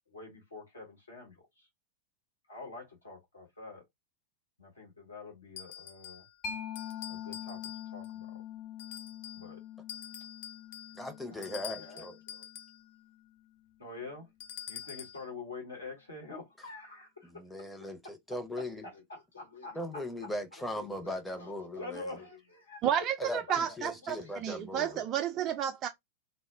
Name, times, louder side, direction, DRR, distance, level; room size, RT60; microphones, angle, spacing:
voice 1, 0.1-1.7 2.5-3.8 4.6-6.2 7.1-8.4 9.3-9.6 11.3-12.4 13.8-14.3 14.7-17.4 18.8-20.1 20.6-23.8 24.0-25.2, left 3 dB, 70° left, 0.9 m, -47 dB
sound 1, 5.6-6.3 6.7-8.2 8.8-9.5 9.9-12.8 14.4-15.3, left 10 dB, 50° left, 0.3 m, -46 dB
Mallet percussion, 6.4-13.7, left 8 dB, 30° left, 1.0 m, -45 dB
voice 2, 10.9-12.2 17.2-18.8 19.7-22.2 23.2-25.0, left 1 dB, 5° left, 0.6 m, -39 dB
voice 3, 22.8-25.9, right 9 dB, 35° right, 0.3 m, -31 dB
2.1 x 2.0 x 3.2 m
figure-of-eight pair, 90°, 0 cm